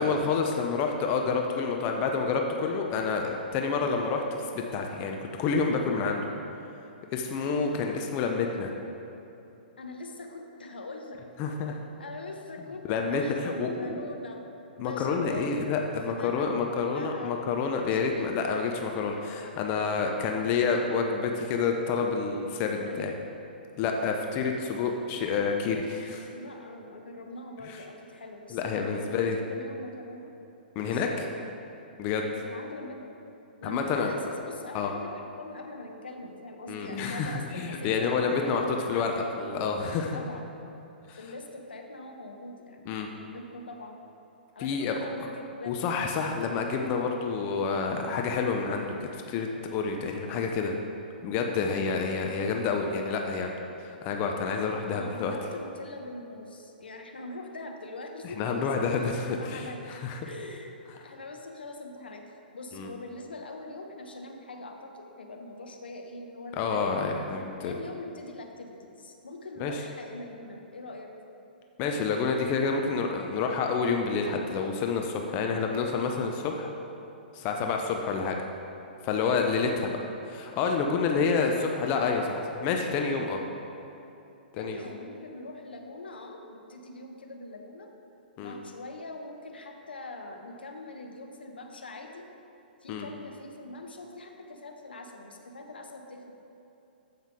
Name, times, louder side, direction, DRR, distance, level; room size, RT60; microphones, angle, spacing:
voice 1, 0.0-6.2 7.1-8.7 11.4-11.8 12.9-14.0 14.8-23.1 23.8-26.3 27.7-27.8 28.5-29.4 30.8-31.1 32.0-32.3 33.6-34.1 34.7-34.9 36.7-40.2 41.1-41.2 42.9-43.1 44.6-45.3 45.7-50.7 51.2-53.5 53.8-55.3 58.4-60.2 62.7-62.9 66.6-67.7 69.6-69.8 71.8-76.7 77.3-78.4 79.0-80.0 80.3-83.4 84.5-84.8 88.4-88.5 92.9-93.1, left 5 dB, 30° left, 2 dB, 0.7 m, -28 dB
voice 2, 9.8-11.2 12.0-14.4 14.8-15.7 16.1-17.4 17.8-18.4 22.8-23.1 26.3-30.4 30.8-31.5 32.4-33.2 33.6-39.3 40.1-40.5 41.1-42.8 43.1-44.0 44.5-45.9 54.9-59.8 60.2-62.2 62.5-67.2 67.6-71.1 77.6-77.9 84.6-87.9 88.4-92.3 92.8-96.3, left 2 dB, 75° left, 3 dB, 1.0 m, -42 dB
14.5 x 5.6 x 3.6 m, 2.9 s
figure-of-eight pair, 115°, 5 cm